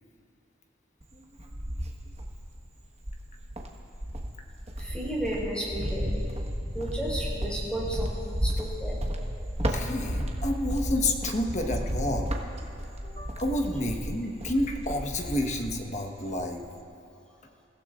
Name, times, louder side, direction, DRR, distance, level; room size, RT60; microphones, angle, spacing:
Cricket, 1.0-2.5 3.0-16.0 16.3-16.8, equal, 35° right, 1.3 m, -33 dB
voice 1, 4.8-6.3 6.7-9.0, right 1 dB, 5° left, -5 dB, 4.4 m, -33 dB
voice 2, 9.7-12.3 13.0-16.6, left 1 dB, 40° left, 3 dB, 1.2 m, -30 dB
29.0 x 15.5 x 2.5 m, 2.7 s
head